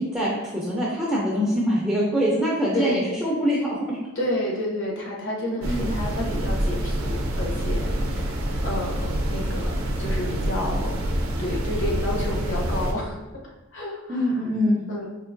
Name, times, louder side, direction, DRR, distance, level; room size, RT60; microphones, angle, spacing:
voice 1, 0.0-4.0 5.6-5.9 14.1-14.8, equal, 5° right, -7 dB, 0.5 m, -24 dB
voice 2, 2.7-3.1 4.2-8.4 8.6-11.0 11.4-13.2 13.4-14.3 14.9-15.1, left 1 dB, 60° left, -2 dB, 0.8 m, -30 dB
sound 1, 5.6-12.9, right 1 dB, 80° right, 0.5 m, -26 dB
4.6 x 2.9 x 2.5 m, 1.1 s
head